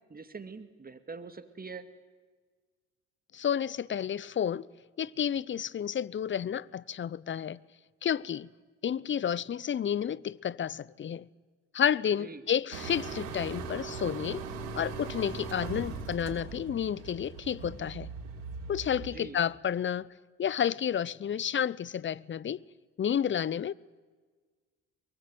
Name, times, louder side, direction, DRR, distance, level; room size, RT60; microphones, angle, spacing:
voice 1, 0.1-1.9 12.2-12.4 19.0-19.4, right 4 dB, 25° right, 2.4 m, -44 dB
voice 2, 3.3-4.6 5.0-7.6 8.0-8.5 8.8-11.3 11.7-14.4 14.8-18.1 18.7-20.1 20.4-22.6 23.0-23.7, left 9 dB, 35° left, 0.7 m, -31 dB
sound 1, 12.7-19.1, right 4 dB, 80° right, 3.8 m, -39 dB
23.0 x 20.0 x 9.3 m
hypercardioid pair, 65°, 36 cm